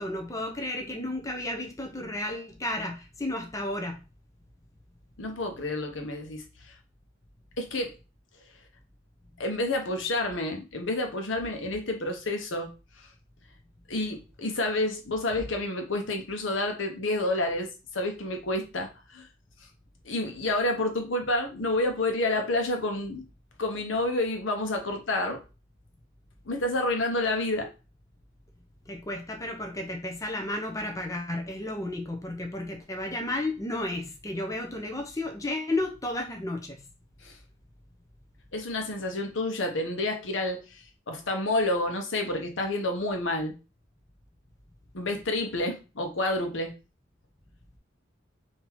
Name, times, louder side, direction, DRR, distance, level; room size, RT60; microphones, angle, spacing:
voice 1, 0.0-4.0 28.9-36.8, left 1 dB, 15° left, 3 dB, 0.7 m, -33 dB
voice 2, 5.2-6.7 7.6-7.9 9.4-13.1 13.9-19.3 20.0-23.2 23.6-25.4 26.5-27.7 37.2-37.4 38.5-43.5 44.9-46.8, left 2 dB, 80° left, 4 dB, 1.0 m, -29 dB
3.8 x 2.8 x 4.5 m, 0.31 s
head